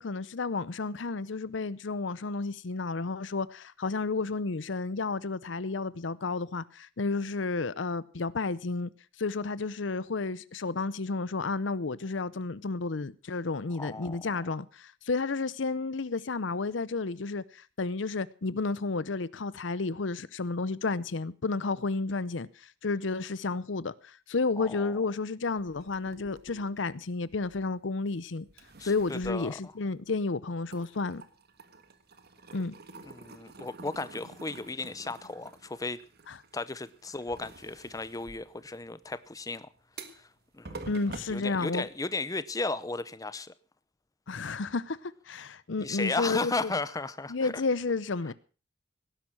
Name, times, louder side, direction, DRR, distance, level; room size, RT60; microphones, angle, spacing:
voice 1, 0.0-8.9 9.2-22.5 22.8-28.5 28.8-31.2 32.5-32.7 36.3-36.4 40.9-41.9 44.3-46.7 47.3-48.3, left 3 dB, 70° left, 0.7 m, -31 dB
voice 2, 13.8-14.5 24.6-24.9 28.8-29.7 33.0-36.0 36.5-39.7 40.1-40.3 40.5-40.9 41.3-43.5 45.8-47.5 48.3-48.4, left 3 dB, 20° left, 0.7 m, -35 dB
sound 1, 25.6-28.1 28.5-30.3 30.6-42.3, right 3 dB, 55° right, 1.7 m, -49 dB
17.5 x 11.0 x 6.1 m
head